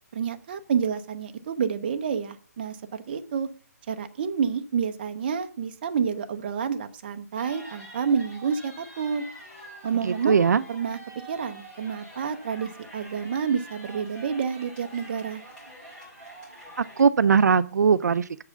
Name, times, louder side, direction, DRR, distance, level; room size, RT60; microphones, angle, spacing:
voice 1, 0.1-3.5 3.9-9.2 9.8-10.4 10.7-11.0 11.3-15.4, right 6 dB, 35° right, 7 dB, 0.7 m, -29 dB
sound 1, 7.4-17.0, right 1 dB, 10° left, 2.3 m, -46 dB
voice 2, 10.0-10.6 16.8-18.4, right 6 dB, 75° right, 14 dB, 0.4 m, -20 dB
6.9 x 4.8 x 6.6 m, 0.43 s
hypercardioid pair, 165°, 9 cm